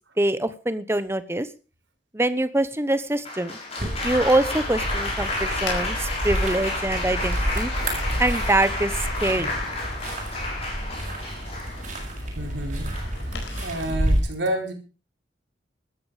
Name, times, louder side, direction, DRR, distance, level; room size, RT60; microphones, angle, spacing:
voice 1, 0.2-1.5 2.1-3.6 4.0-7.7 8.2-8.9 9.2-9.5, right 1 dB, 15° right, 13 dB, 1.0 m, -24 dB
Applause, 3.2-12.1 12.9-13.3, left 2 dB, 35° left, 7.1 m, -31 dB
sound 1, 3.8-14.2, right 1 dB, 40° right, 6.9 m, -29 dB
voice 2, 5.2-5.6 12.3-14.7, right 1 dB, 80° right, 3 dB, 4.5 m, -31 dB
sound 2, 5.5-14.0, left 4 dB, 85° left, 4.6 m, -44 dB
14.5 x 13.0 x 5.1 m, 0.35 s
head